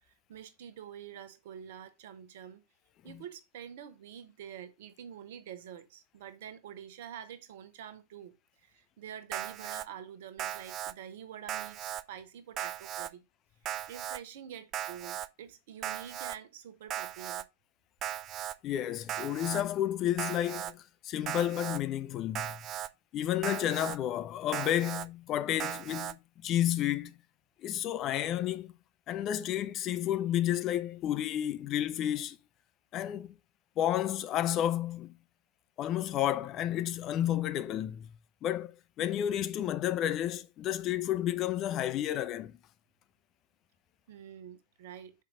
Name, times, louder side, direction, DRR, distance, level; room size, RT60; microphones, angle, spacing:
voice 1, 0.0-2.6 3.0-8.3 8.6-13.2 13.6-17.4 44.1-45.1, right 9 dB, 55° right, 0.9 m, -47 dB
Alarm, 9.3-9.8 10.4-10.9 11.5-12.0 12.6-13.1 13.6-14.2 14.7-15.3 15.8-16.4 16.9-17.4 18.0-18.5 19.1-19.6 20.2-20.7 21.3-21.8 22.3-22.9 23.4-24.0 24.5-25.1 25.6-26.1, right 11 dB, 30° right, 0.3 m, -37 dB
voice 2, 18.6-22.6 23.1-27.1 27.6-28.7 29.1-32.4 32.9-33.3 33.8-35.2 35.8-38.1 38.4-42.6, left 12 dB, 35° left, 0.4 m, -31 dB
5.6 x 4.6 x 3.7 m
figure-of-eight pair, 90°, 0 cm